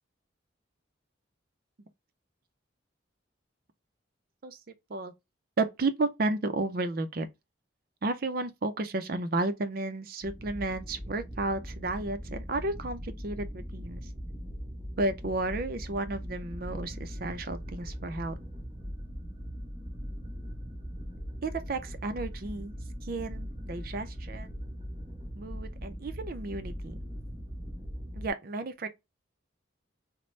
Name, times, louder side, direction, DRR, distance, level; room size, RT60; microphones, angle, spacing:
voice 1, 5.6-7.3 8.0-14.0 15.0-18.4 21.4-22.7 23.0-24.5 25.3-27.0 28.1-28.9, right 2 dB, 50° right, 0.4 m, -32 dB
sound 1, 10.2-28.3, equal, 30° right, 0.8 m, -40 dB
2.9 x 2.0 x 3.0 m
head